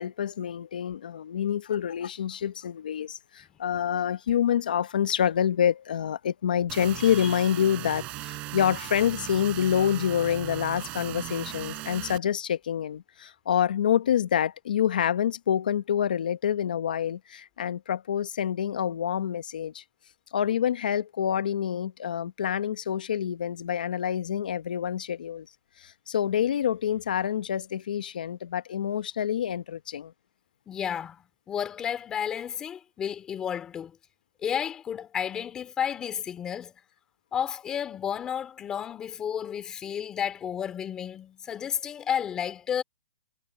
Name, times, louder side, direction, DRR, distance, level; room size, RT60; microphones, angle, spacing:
voice 1, 0.0-19.8 20.3-25.5 25.8-30.1, left 9 dB, 70° left, 1.2 m, -27 dB
sound 1, 6.7-12.2, right 19 dB, 25° right, 4.0 m, -38 dB
voice 2, 30.7-34.0 34.4-36.7 37.3-42.8, left 8 dB, 15° left, 3.6 m, -32 dB
hypercardioid pair, 165°, 5 cm